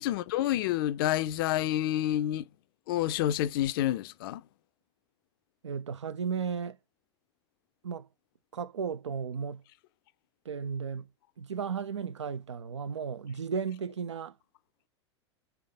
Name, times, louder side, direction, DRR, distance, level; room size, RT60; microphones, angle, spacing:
voice 1, 0.0-2.4 2.9-4.4, left 13 dB, 50° left, 0.4 m, -28 dB
voice 2, 5.6-6.8 7.8-8.1 8.5-9.6 10.5-11.1 11.4-14.4, right 6 dB, 75° right, 0.4 m, -34 dB
3.5 x 3.4 x 3.5 m
figure-of-eight pair, 85°, 15 cm